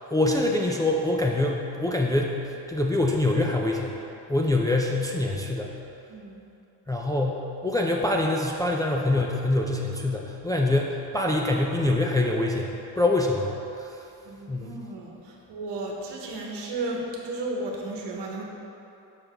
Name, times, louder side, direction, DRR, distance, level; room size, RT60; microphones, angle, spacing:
voice 1, 0.1-4.0 4.3-5.7 6.9-14.1 14.5-14.7, left 2 dB, 10° left, -1 dB, 0.3 m, -25 dB
voice 2, 6.1-6.4 14.2-18.4, right 2 dB, 75° right, -1 dB, 1.1 m, -34 dB
5.7 x 5.4 x 3.4 m, 2.8 s
cardioid pair, 95°, 42 cm